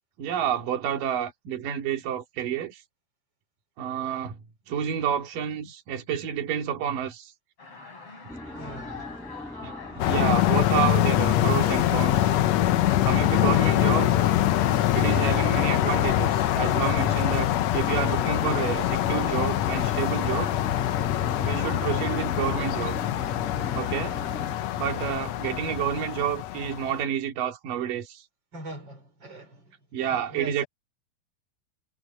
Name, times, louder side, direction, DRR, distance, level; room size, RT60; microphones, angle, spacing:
voice 1, 0.2-2.8 3.8-4.4 4.7-7.3 9.6-12.4 13.0-14.2 14.9-20.5 21.4-23.0 23.7-24.2 24.8-28.2 29.9-30.6, right 9 dB, 70° right, 4.1 m, -29 dB
sound 1, 7.6-25.4, left 4 dB, 40° left, 6.4 m, -46 dB
sound 2, 8.3-24.5, equal, ahead, 0.9 m, -41 dB
voice 2, 8.5-9.2 28.5-30.7, right 2 dB, 30° right, 5.5 m, -42 dB
sound 3, 10.0-27.0, left 13 dB, 70° left, 1.7 m, -24 dB
omnidirectional pair, 4.0 m